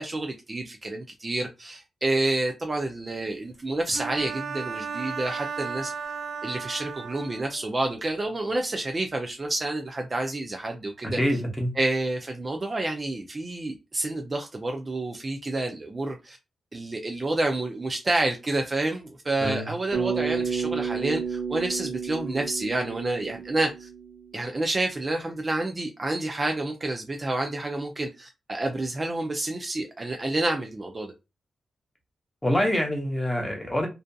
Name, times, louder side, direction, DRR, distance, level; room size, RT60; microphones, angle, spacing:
voice 1, 0.0-5.9 6.4-11.2 11.8-16.4 16.7-23.9 24.3-31.1, right 2 dB, 25° right, 0.3 m, -29 dB
Bowed string instrument, 3.9-7.6, right 5 dB, 85° right, 0.5 m, -35 dB
voice 2, 11.1-11.7 19.4-19.7 32.4-33.9, equal, 10° left, 0.7 m, -25 dB
Bass guitar, 19.9-24.3, right 6 dB, 60° right, 1.0 m, -31 dB
2.5 x 2.4 x 2.2 m
wide cardioid pair, 155°, 0 cm